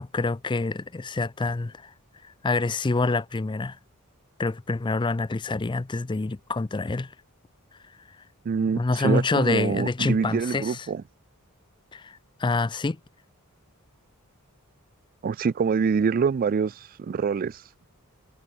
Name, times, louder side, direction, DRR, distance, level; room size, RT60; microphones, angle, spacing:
voice 1, 0.0-1.9 2.2-3.8 4.4-7.1 8.7-10.9 11.9-13.0, left 3 dB, 20° left, 0.4 m, -27 dB
voice 2, 8.5-11.0 15.2-17.6, right 5 dB, 40° right, 0.3 m, -25 dB
head